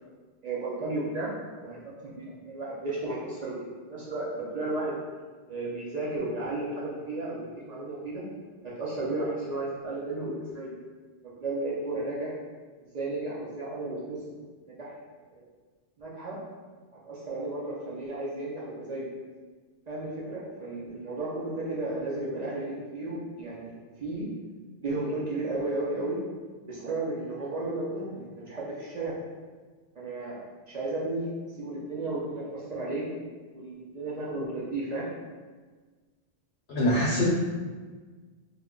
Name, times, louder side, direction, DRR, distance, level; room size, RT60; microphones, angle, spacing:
voice 1, 0.4-1.3 1.6-4.9 5.5-8.2 8.6-10.8 11.2-12.3 12.9-14.2 14.7-15.0 15.3-15.5 16.0-16.4 17.0-19.1 19.9-24.3 24.8-26.2 26.6-29.2 29.9-30.4 30.7-31.3 31.6-33.1 33.5-35.1, right 2 dB, 55° right, -7 dB, 0.5 m, -33 dB
voice 2, 36.7-37.2, equal, 70° left, -7 dB, 0.8 m, -24 dB
2.3 x 2.1 x 3.6 m, 1.4 s
omnidirectional pair, 1.2 m